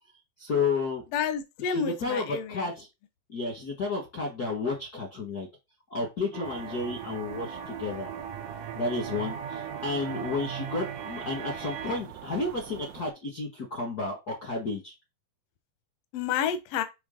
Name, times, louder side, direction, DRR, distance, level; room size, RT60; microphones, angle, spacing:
voice 1, 0.4-1.0 1.6-2.9 3.3-5.5 5.9-8.1 8.7-14.9, left 3 dB, 65° left, 0.9 m, -31 dB
voice 2, 1.1-2.7 16.1-16.8, left 8 dB, 80° left, 1.4 m, -29 dB
sound 1, 6.3-12.0, right 6 dB, 65° right, 1.9 m, -39 dB
sound 2, 6.4-13.1, right 12 dB, 85° right, 1.8 m, -43 dB
6.3 x 3.3 x 5.1 m
omnidirectional pair, 4.0 m